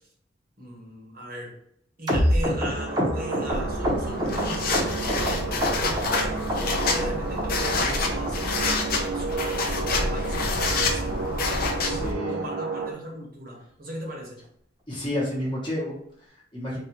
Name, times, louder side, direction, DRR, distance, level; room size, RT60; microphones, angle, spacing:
voice 1, 0.6-1.5 2.0-14.4, right 1 dB, 50° right, -1 dB, 1.1 m, -38 dB
sound 1, 2.1-5.3 5.6-6.2 6.5-7.1 7.4-7.5 7.7-8.0 8.3-8.4 8.6-8.8 9.1-9.2 9.5-9.7 10.0-10.1 10.4-10.6 10.9-11.0 11.3-11.5 11.8-11.9, equal, 20° right, 0.9 m, -26 dB
sound 2, 2.8-12.9, right 3 dB, 90° right, 0.5 m, -32 dB
sound 3, 3.5-12.1, left 3 dB, 50° left, 0.6 m, -27 dB
voice 2, 11.8-12.4 14.9-16.8, left 1 dB, 25° left, -6 dB, 1.1 m, -31 dB
3.9 x 2.5 x 3.0 m, 0.70 s
head